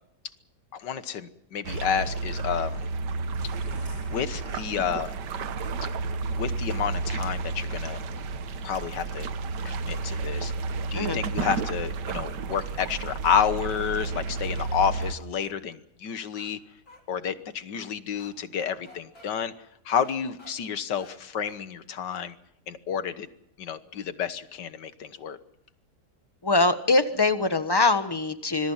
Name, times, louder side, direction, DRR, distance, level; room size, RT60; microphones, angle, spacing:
voice 1, 0.7-2.9 4.1-5.2 5.8-5.9 6.4-8.0 8.6-9.3 9.7-10.5 10.9-16.6 17.1-19.5 19.9-22.4 22.7-23.3 23.6-25.4, left 7 dB, 80° left, 12 dB, 1.9 m, -30 dB
sound 1, 1.6-15.1, right 4 dB, 75° right, 1.7 m, -31 dB
sound 2, 3.4-5.2, right 1 dB, 40° right, 4.1 m, -47 dB
sound 3, 14.0-15.5 16.4-16.5 16.9-17.0 18.2-18.3 18.6-19.3 20.0-20.5 21.0-21.1 21.4-21.6, left 2 dB, 55° left, 4.4 m, -52 dB
voice 2, 26.4-28.7, left 3 dB, 15° left, 9 dB, 1.2 m, -23 dB
25.5 x 22.0 x 5.8 m, 0.76 s
omnidirectional pair, 1.8 m